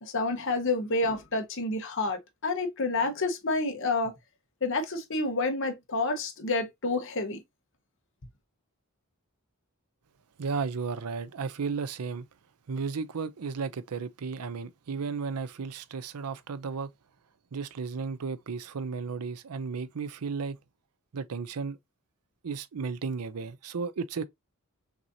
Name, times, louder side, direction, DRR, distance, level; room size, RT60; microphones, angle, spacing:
voice 1, 0.0-4.1 4.6-7.4, left 3 dB, 60° left, 1.0 m, -29 dB
voice 2, 10.4-12.2 12.7-16.9 17.5-20.6 21.1-21.8 22.4-24.2, right 5 dB, 90° right, 0.5 m, -34 dB
6.0 x 2.8 x 2.7 m
head